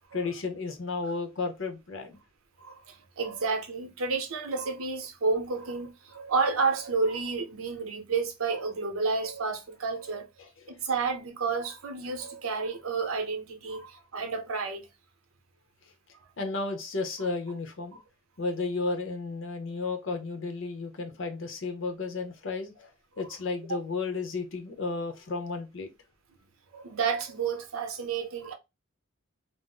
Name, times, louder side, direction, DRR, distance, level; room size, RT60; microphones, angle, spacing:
voice 1, 0.1-2.2 16.4-18.0 18.4-22.9 23.2-25.9, left 3 dB, 65° left, 0.7 m, -33 dB
voice 2, 2.6-10.3 10.7-14.9 23.2-23.3 26.7-28.5, right 4 dB, 85° right, 0.8 m, -30 dB
2.6 x 2.0 x 3.8 m
head